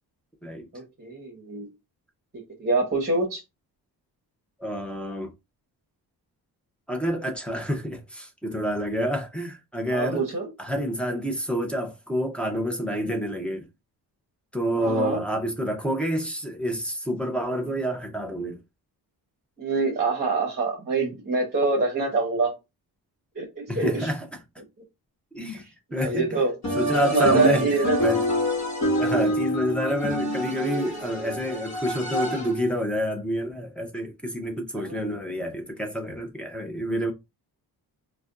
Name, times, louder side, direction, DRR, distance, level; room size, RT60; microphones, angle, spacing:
voice 1, 0.7-1.7 2.6-3.4 9.9-10.5 14.8-15.2 19.6-22.5 23.3-24.1 25.9-26.5 27.0-28.0 34.7-35.0, right 3 dB, 25° right, 0.8 m, -25 dB
voice 2, 4.6-5.3 6.9-10.2 10.6-13.7 14.5-18.6 23.7-24.4 25.3-25.6 25.9-26.4 26.7-28.2 29.0-37.1, equal, 5° left, 0.5 m, -28 dB
sound 1, 26.6-32.7, right 1 dB, 50° left, 1.0 m, -26 dB
2.4 x 2.2 x 3.6 m
wide cardioid pair, 165°, 37 cm